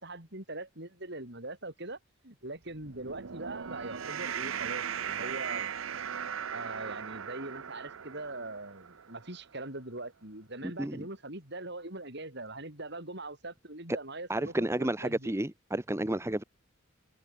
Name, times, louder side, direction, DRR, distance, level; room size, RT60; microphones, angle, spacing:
voice 1, 0.0-2.0 2.2-5.7 6.5-15.3, right 2 dB, 55° right, 7.3 m, -42 dB
sound 1, 2.7-9.3, right 8 dB, 75° right, 0.8 m, -38 dB
voice 2, 14.3-16.4, right 1 dB, 15° right, 0.9 m, -31 dB
head